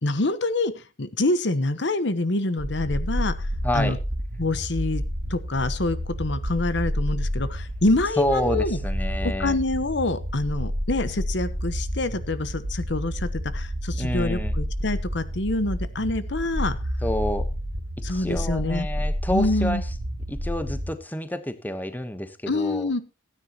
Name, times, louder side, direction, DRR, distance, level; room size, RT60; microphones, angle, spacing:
voice 1, 0.0-0.7 1.0-3.5 3.7-4.0 4.4-5.0 5.3-8.8 9.2-16.8 18.0-18.9 19.3-19.8 22.5-23.0, left 2 dB, 65° left, 13 dB, 1.1 m, -26 dB
sound 1, 2.6-20.9, equal, 60° right, 2.1 m, -30 dB
voice 2, 3.6-4.0 8.2-9.6 13.9-14.5 17.0-17.5 18.1-19.9 20.3-22.9, left 1 dB, 10° left, 10 dB, 1.1 m, -28 dB
17.0 x 9.9 x 3.0 m, 0.32 s
head